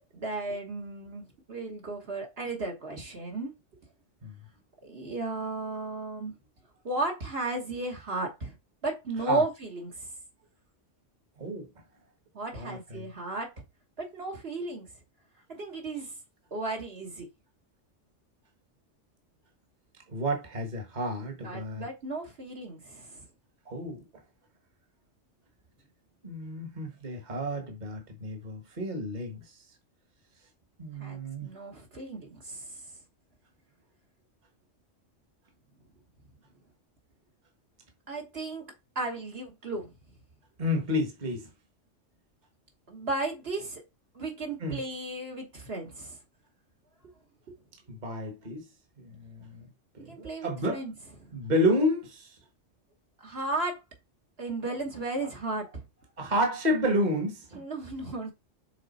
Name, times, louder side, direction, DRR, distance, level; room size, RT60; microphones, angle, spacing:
voice 1, 0.1-3.5 4.8-6.3 6.8-8.6 8.8-10.1 12.3-13.5 14.0-14.9 15.5-16.1 16.5-17.3 21.4-23.2 31.0-32.8 38.1-38.7 38.9-39.9 42.9-43.8 44.1-46.2 50.1-50.9 51.2-51.3 53.2-53.8 54.4-55.8 57.5-58.3, right 2 dB, 55° right, 1.6 m, -34 dB
voice 2, 12.5-13.1 20.1-21.8 23.7-24.0 26.2-29.4 30.8-31.5 40.6-41.5 44.6-44.8 47.9-48.6 49.0-49.7 49.9-50.8 51.3-52.4 56.2-57.6, equal, 35° right, 1.5 m, -30 dB
6.7 x 3.8 x 4.1 m
omnidirectional pair, 1.3 m